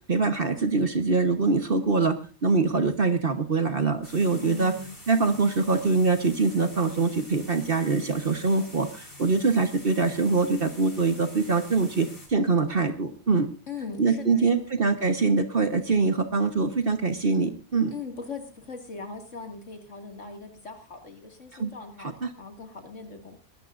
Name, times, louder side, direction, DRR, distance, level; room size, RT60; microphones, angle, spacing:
voice 1, 0.1-2.1 2.4-4.7 5.1-13.5 14.0-17.9 21.6-21.7 22.2-22.3, right 4 dB, 40° right, 8 dB, 1.4 m, -24 dB
sound 1, 4.0-12.3, left 1 dB, 40° left, 4.5 m, -46 dB
voice 2, 4.3-5.0 13.7-14.6 17.9-22.1 22.4-23.4, left 4 dB, 55° left, 4 dB, 2.7 m, -40 dB
21.0 x 13.5 x 2.6 m, 0.33 s
omnidirectional pair, 1.5 m